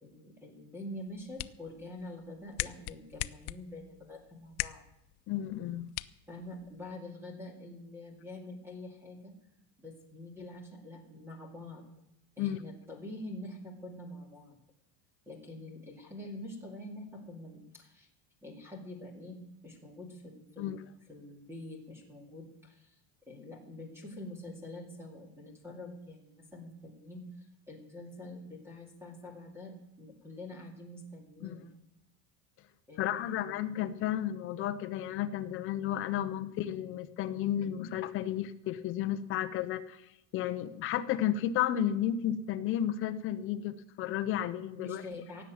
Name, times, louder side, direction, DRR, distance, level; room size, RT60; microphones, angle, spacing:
voice 1, 0.0-4.8 6.3-9.3 9.8-11.8 12.4-14.6 15.3-18.1 18.4-19.4 19.6-20.8 21.1-23.0 23.3-27.3 27.7-31.7 32.9-33.5 44.8-45.4, left 1 dB, 5° right, 2 dB, 2.3 m, -46 dB
sound 1, 1.0-7.0, left 19 dB, 90° left, 0.7 m, -42 dB
voice 2, 5.3-5.9 12.4-12.6 20.6-20.8 31.4-31.6 33.0-40.0 40.3-45.0, left 11 dB, 30° left, 11 dB, 0.5 m, -32 dB
17.0 x 7.2 x 9.3 m, 0.83 s
cardioid pair, 180°, 49 cm